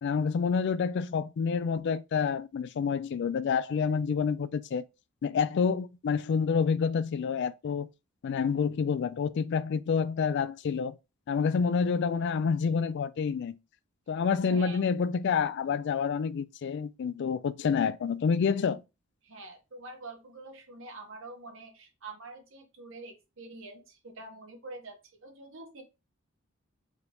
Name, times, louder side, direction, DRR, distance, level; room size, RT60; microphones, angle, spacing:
voice 1, 0.0-4.8 5.2-7.9 8.2-11.0 11.3-13.6 14.1-18.8, left 6 dB, 55° left, 0.3 m, -28 dB
voice 2, 14.5-14.8 19.2-25.8, right 2 dB, 65° right, 1.2 m, -46 dB
4.7 x 2.6 x 3.4 m
head